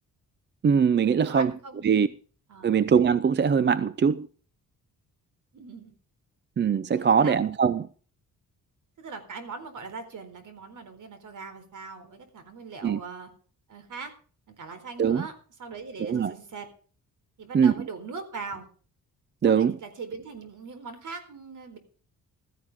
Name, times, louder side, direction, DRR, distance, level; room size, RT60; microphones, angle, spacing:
voice 1, 0.6-1.5 1.8-2.1 2.6-4.3 6.6-7.9 12.8-13.0 15.0-15.2 16.0-16.3 17.5-17.7 19.4-19.7, right 6 dB, 30° right, 0.5 m, -22 dB
voice 2, 1.2-2.1 2.5-2.8 5.5-5.9 7.0-7.4 9.0-13.3 13.7-14.1 14.5-16.7 17.4-18.7 19.5-21.8, right 4 dB, 60° right, 4.1 m, -40 dB
15.5 x 14.5 x 3.6 m
wide cardioid pair, 145°, 35 cm